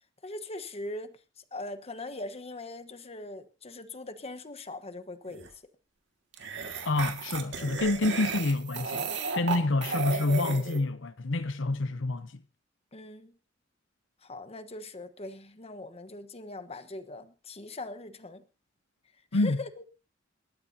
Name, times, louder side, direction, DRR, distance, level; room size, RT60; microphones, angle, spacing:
voice 1, 0.2-5.5 7.6-7.9 9.5-9.7 12.9-13.4 14.2-18.4 19.3-19.8, left 2 dB, 35° left, 1.2 m, -41 dB
sound 1, 5.3-5.5 6.3-10.8, right 4 dB, 70° right, 2.0 m, -34 dB
voice 2, 6.8-12.4 19.3-19.6, left 2 dB, 80° left, 0.8 m, -28 dB
28.0 x 13.0 x 2.8 m
head